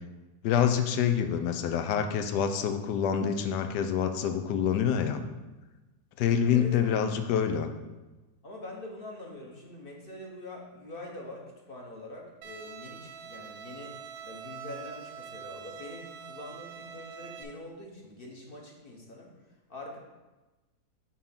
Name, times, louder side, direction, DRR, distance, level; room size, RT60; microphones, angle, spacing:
voice 1, 0.4-5.2 6.2-7.7, left 8 dB, 90° left, 7 dB, 1.2 m, -26 dB
voice 2, 6.5-7.2 8.4-19.3 19.7-20.0, left 2 dB, 40° left, -1 dB, 0.9 m, -44 dB
Bowed string instrument, 12.4-17.4, right 7 dB, 90° right, 1.2 m, -44 dB
5.9 x 3.9 x 5.5 m, 1.1 s
omnidirectional pair, 1.7 m